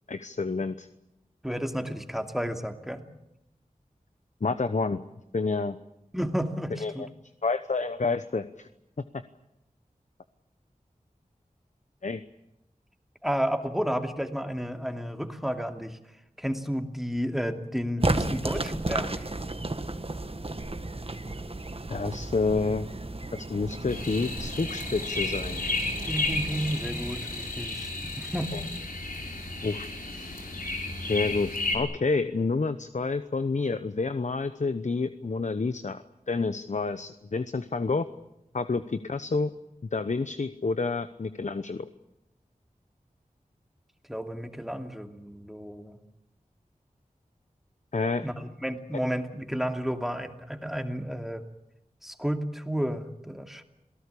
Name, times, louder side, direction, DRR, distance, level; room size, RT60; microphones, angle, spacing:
voice 1, 0.1-0.9 4.4-5.0 5.3-5.8 6.8-7.1 7.4-8.7 9.1-9.2 12.0-12.2 21.9-22.9 23.3-25.6 28.5-28.6 29.6-29.9 31.1-38.1 38.5-39.5 39.9-41.8 47.9-48.2, left 4 dB, 55° left, 11 dB, 1.0 m, -29 dB
voice 2, 1.4-3.0 6.1-7.1 13.2-16.0 16.4-19.3 26.0-28.6 44.1-46.0 48.2-51.5 52.0-53.6, equal, ahead, 6 dB, 2.7 m, -32 dB
sound 1, 18.0-27.8, right 2 dB, 40° right, 1.7 m, -34 dB
sound 2, 23.9-31.8, left 2 dB, 85° left, 5.7 m, -33 dB
27.5 x 18.0 x 8.6 m, 0.86 s
wide cardioid pair, 45°, 14 cm